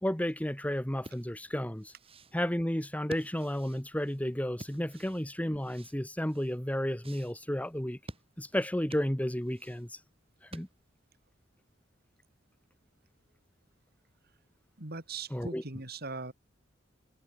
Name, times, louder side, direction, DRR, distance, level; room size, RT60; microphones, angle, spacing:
voice 1, 0.0-1.9 2.3-8.0 8.4-10.0 10.4-10.7 15.3-15.6, equal, 10° left, 1.3 m, -32 dB
sound 1, 1.0-11.0, right 1 dB, 30° right, 7.9 m, -51 dB
voice 2, 14.8-16.3, right 3 dB, 55° right, 4.1 m, -40 dB
head